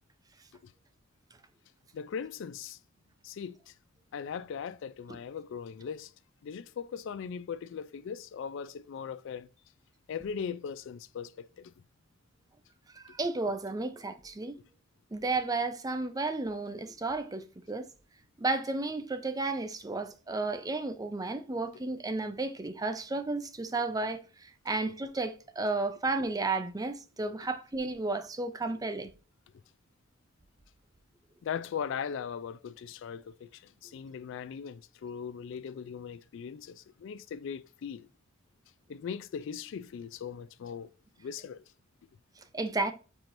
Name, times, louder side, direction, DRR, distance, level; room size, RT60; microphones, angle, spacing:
voice 1, 1.9-2.8 3.2-3.6 4.1-6.1 6.4-9.5 10.1-11.7 31.4-38.1 38.9-40.9 41.2-41.6, left 7 dB, 65° left, 0.3 m, -39 dB
voice 2, 13.0-14.6 15.1-17.9 18.4-29.1 42.5-42.9, right 3 dB, 20° right, 0.5 m, -33 dB
4.8 x 4.4 x 2.5 m
head